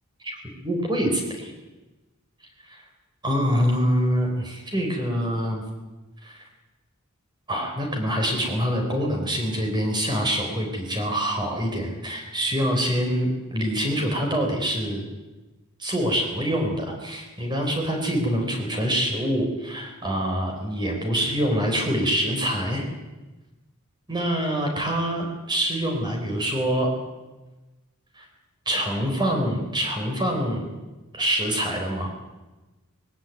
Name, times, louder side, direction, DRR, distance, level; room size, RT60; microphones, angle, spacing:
voice 1, 0.6-1.5 2.7-2.8 3.2-5.6 6.2-6.4 7.5-15.0 15.8-22.9 24.1-26.9 28.2-28.3 28.7-30.6 31.1-32.1, equal, 20° right, 2 dB, 4.3 m, -25 dB
20.5 x 17.0 x 9.3 m, 1.1 s
head